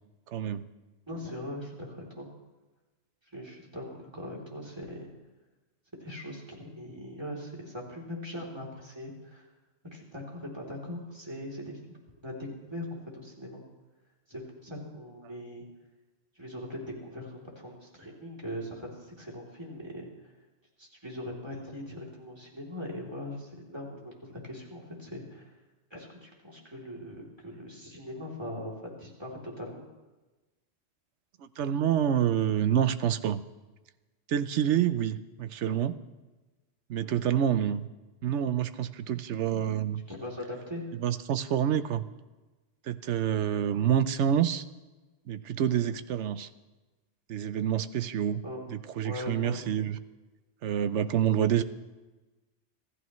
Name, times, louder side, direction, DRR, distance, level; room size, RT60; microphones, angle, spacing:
voice 1, 0.3-0.7 31.4-33.4 34.3-36.0 36.9-37.9 38.2-40.0 41.0-42.0 42.8-44.6 45.3-46.5 47.3-48.4 48.7-50.0 50.6-51.6, right 9 dB, 85° right, 12 dB, 1.0 m, -27 dB
voice 2, 1.1-2.3 3.3-5.1 6.0-9.5 9.9-12.0 12.2-12.8 13.1-13.6 14.3-15.6 16.3-20.1 20.8-25.5 25.9-29.9 37.0-37.2 40.1-40.9 45.7-45.9 48.4-48.7 49.0-49.6, left 1 dB, 20° right, -2 dB, 3.2 m, -40 dB
26.0 x 14.0 x 3.1 m, 1.2 s
omnidirectional pair, 1.2 m